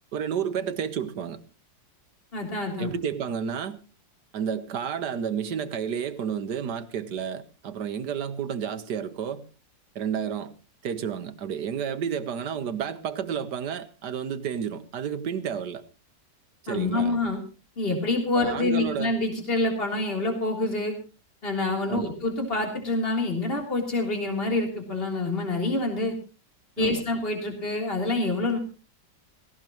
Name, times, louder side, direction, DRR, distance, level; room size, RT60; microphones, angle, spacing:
voice 1, 0.1-1.4 2.8-3.8 4.3-9.4 9.9-10.5 10.8-15.8 16.6-17.2 18.3-19.1 21.9-22.1 26.8-27.0, right 7 dB, 65° right, 11 dB, 1.6 m, -31 dB
voice 2, 2.3-2.9 16.7-17.4 17.8-20.9 21.4-26.2 26.8-28.6, left 2 dB, 30° left, 1 dB, 3.7 m, -27 dB
17.5 x 16.5 x 3.0 m, 0.34 s
omnidirectional pair, 2.0 m